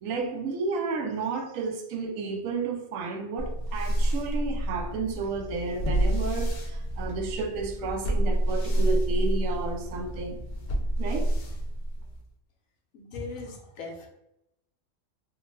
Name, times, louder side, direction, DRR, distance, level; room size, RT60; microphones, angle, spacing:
voice 1, 0.0-10.4 11.0-11.3, right 4 dB, 90° right, 1.0 m, -32 dB
sound 1, 3.4-12.3, right 1 dB, 55° left, 0.5 m, -28 dB
voice 2, 13.1-14.1, left 3 dB, 85° left, 1.1 m, -38 dB
3.4 x 2.1 x 3.1 m
omnidirectional pair, 1.3 m